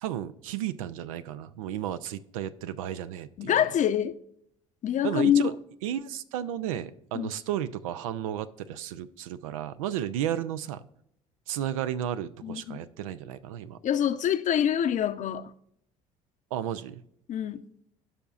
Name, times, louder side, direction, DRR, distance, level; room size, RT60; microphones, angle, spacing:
voice 1, 0.0-3.6 5.0-5.5 5.8-10.8 11.5-13.8 16.5-17.0, right 11 dB, 85° right, 0.4 m, -33 dB
voice 2, 3.4-4.1 4.8-5.5 7.2-7.3 12.4-12.8 13.8-15.5 17.3-17.6, left 9 dB, 45° left, 0.6 m, -25 dB
15.0 x 5.6 x 2.4 m
hypercardioid pair, 65°, 17 cm